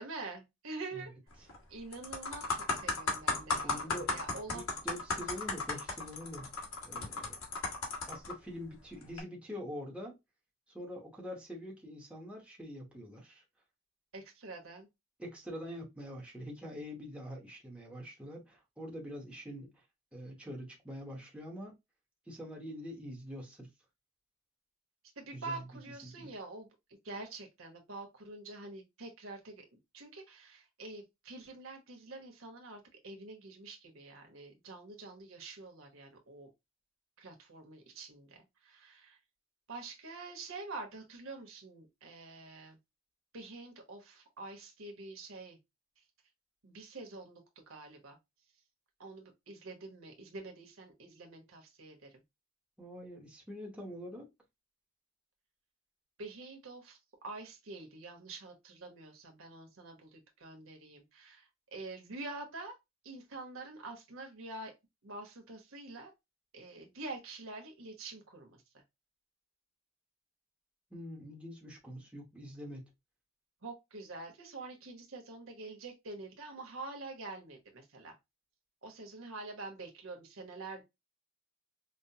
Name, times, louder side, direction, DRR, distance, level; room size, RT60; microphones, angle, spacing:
voice 1, 0.0-1.1 1.7-4.6 14.1-14.9 25.2-29.6 29.9-36.5 37.2-39.2 39.7-42.8 43.3-45.6 46.6-48.2 49.0-52.1 56.2-57.0 57.2-62.7 63.0-64.7 65.0-66.1 66.5-68.6 73.6-78.2 78.8-80.8, right 3 dB, 80° right, 1.1 m, -46 dB
voice 2, 0.9-1.5 3.6-4.2 4.5-7.4 8.1-10.2 10.7-13.4 15.2-19.9 20.1-21.8 22.2-23.7 25.3-26.4 52.8-54.3 70.9-72.9, equal, 5° right, 0.9 m, -45 dB
sound 1, 1.3-1.6 1.9-8.3 9.0-9.2, left 3 dB, 90° left, 1.4 m, -35 dB
5.2 x 2.0 x 2.7 m
head